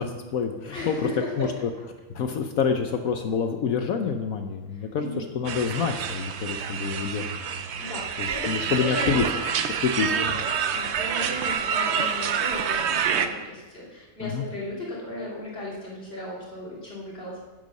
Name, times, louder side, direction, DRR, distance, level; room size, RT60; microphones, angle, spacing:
voice 1, 0.0-1.1 1.4-1.5 2.1-7.4 8.2-9.2 9.8-10.4 14.2-14.4, left 6 dB, 65° left, 5 dB, 1.0 m, -27 dB
voice 2, 0.7-1.5 4.7-5.3 7.8-8.5 8.7-9.3 10.0-10.4 10.7-17.4, left 1 dB, 35° left, -5 dB, 3.2 m, -36 dB
sound 1, 5.5-13.3, right 7 dB, 65° right, 0.6 m, -27 dB
9.4 x 8.0 x 5.4 m, 1.1 s
omnidirectional pair, 1.8 m